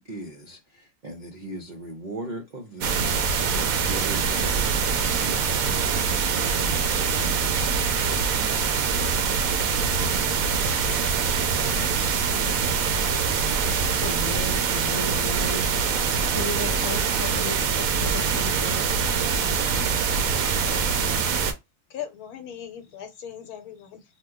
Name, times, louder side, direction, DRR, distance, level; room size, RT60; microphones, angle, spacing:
voice 1, 0.0-3.1 3.5-5.8 6.4-7.0, right 1 dB, 50° right, 0.5 m, -38 dB
sound 1, 2.8-21.5, right 6 dB, 70° right, 0.9 m, -24 dB
voice 2, 14.0-15.7 16.1-19.5, equal, 15° right, 0.8 m, -35 dB
voice 3, 21.9-24.0, left 9 dB, 75° left, 1.2 m, -38 dB
2.8 x 2.2 x 3.5 m
omnidirectional pair, 1.6 m